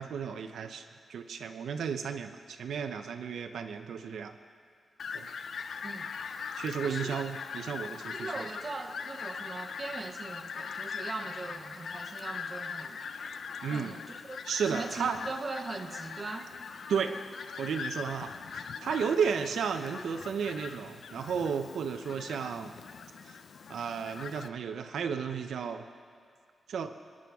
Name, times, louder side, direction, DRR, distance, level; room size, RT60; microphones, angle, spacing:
voice 1, 0.0-4.3 5.1-5.3 6.5-8.3 13.6-13.9 14.5-15.2 16.9-17.2 17.6-22.8 23.2-23.4 23.7-25.9 26.7-26.9, right 6 dB, 90° right, 7 dB, 0.5 m, -33 dB
Fowl, 5.0-24.5, left 6 dB, 65° left, 0.5 m, -41 dB
voice 2, 5.8-6.1 6.8-7.2 8.1-13.0 13.7-16.5, right 3 dB, 30° right, 5 dB, 0.9 m, -40 dB
24.0 x 9.7 x 3.5 m, 2.2 s
wide cardioid pair, 140°, 0 cm